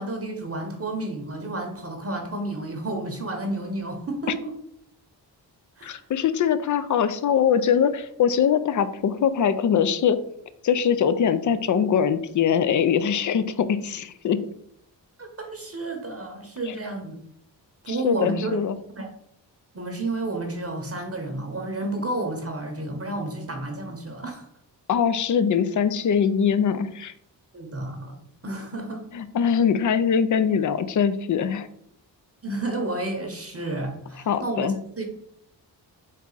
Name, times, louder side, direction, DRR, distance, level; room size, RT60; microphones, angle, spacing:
voice 1, 0.0-4.5 5.8-6.0 15.2-17.2 17.8-18.6 19.0-19.1 19.7-24.5 27.5-28.2 28.4-29.1 32.4-35.0, right 2 dB, 35° right, 3 dB, 0.8 m, -31 dB
voice 2, 5.8-10.2 10.6-14.4 16.6-16.8 17.9-18.8 24.9-27.1 29.1-31.7 34.3-34.8, left 7 dB, 45° left, 13 dB, 0.4 m, -22 dB
4.1 x 2.4 x 3.8 m, 0.69 s
cardioid pair, 55°, 43 cm